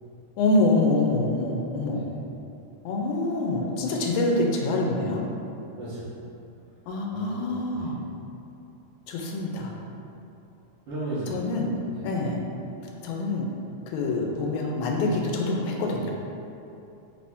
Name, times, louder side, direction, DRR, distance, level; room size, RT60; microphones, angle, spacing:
voice 1, 0.4-2.0 2.9-5.3 6.9-8.0 9.1-9.7 11.3-11.7 12.0-12.4 13.0-13.5 13.9-16.1, left 2 dB, 85° left, 0 dB, 2.0 m, -25 dB
voice 2, 5.7-6.1 7.1-7.9 10.9-11.4 11.9-12.0, right 2 dB, 70° right, -9 dB, 1.3 m, -35 dB
4.7 x 2.6 x 3.4 m, 2.8 s
omnidirectional pair, 3.4 m